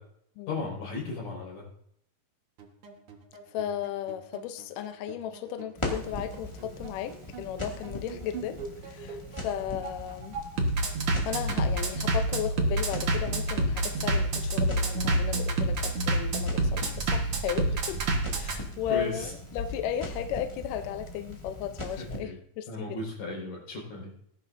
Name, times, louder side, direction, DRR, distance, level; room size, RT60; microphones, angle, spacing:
voice 1, 0.5-1.6 18.9-19.3 22.0-22.4 22.7-24.1, left 3 dB, 60° left, -3 dB, 6.5 m, -35 dB
Bass drum, 2.6-18.6, right 2 dB, 60° right, 1.5 m, -28 dB
voice 2, 3.5-10.4 11.2-18.0 18.3-23.0, left 10 dB, 80° left, 8 dB, 2.0 m, -35 dB
Crackle, 5.7-22.2, left 1 dB, 30° left, 0.5 m, -40 dB
19.5 x 10.5 x 2.6 m, 0.69 s
omnidirectional pair, 4.4 m